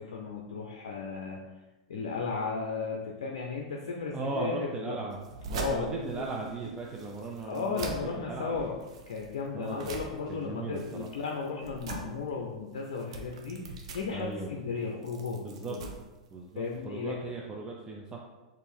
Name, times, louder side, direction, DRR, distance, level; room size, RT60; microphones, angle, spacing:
voice 1, 0.1-1.5 1.9-5.0 5.5-5.9 6.2-6.3 7.5-8.8 9.1-15.9 16.5-17.2, left 5 dB, 70° left, 0 dB, 0.5 m, -35 dB
voice 2, 4.1-5.2 5.5-8.7 9.5-9.9 10.3-11.1 14.1-14.6 15.4-15.8 16.3-18.2, right 3 dB, 25° right, -1 dB, 0.4 m, -37 dB
sound 1, 5.1-16.8, right 4 dB, 65° right, 0.6 m, -43 dB
4.2 x 2.5 x 3.4 m, 1.1 s
hypercardioid pair, 100°, 3 cm